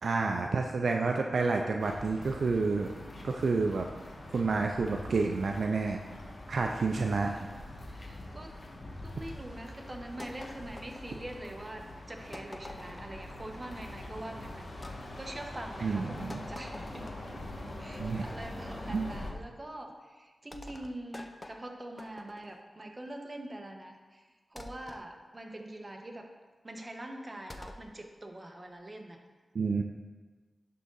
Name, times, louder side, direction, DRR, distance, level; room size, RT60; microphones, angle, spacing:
voice 1, 0.0-2.9 3.2-3.9 4.3-6.0 6.5-7.3 15.8-16.5 18.0-18.2 18.9-19.1 29.5-29.8, right 4 dB, 75° right, 3 dB, 0.4 m, -29 dB
sound 1, 1.8-19.3, left 1 dB, 55° left, 1.2 m, -44 dB
voice 2, 7.8-8.5 9.0-17.1 17.8-24.2 24.5-26.3 26.6-29.2, right 1 dB, 35° right, 3 dB, 1.0 m, -44 dB
sound 2, 10.2-11.6 12.3-13.2 14.8-15.0 16.3-17.4 19.1-19.5 20.5-22.6 24.6-25.1 27.5-27.9, left 1 dB, 30° left, 0.5 m, -47 dB
11.0 x 3.8 x 3.9 m, 1.4 s
cardioid pair, 50°, 0 cm